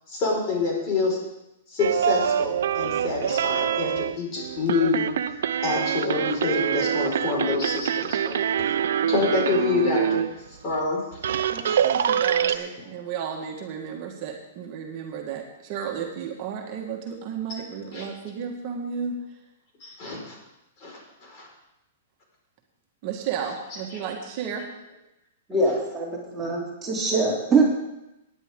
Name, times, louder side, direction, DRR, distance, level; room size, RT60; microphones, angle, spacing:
voice 1, 0.1-1.2 1.7-5.1 5.6-8.4 8.7-8.8 9.1-10.2 10.6-11.0 11.6-11.8 17.9-18.1 19.8-20.3 20.8-21.5, left 3 dB, 35° left, -2 dB, 4.9 m, -26 dB
sound 1, 1.8-10.3 10.8-10.9 11.1-12.6, right 9 dB, 75° right, 0.6 m, -25 dB
voice 2, 11.5-19.2 23.0-24.7, right 7 dB, 40° right, 1 dB, 1.6 m, -33 dB
voice 3, 25.5-27.6, right 3 dB, 10° right, -4 dB, 3.0 m, -23 dB
17.5 x 9.9 x 3.8 m, 0.92 s
hypercardioid pair, 150°, 0 cm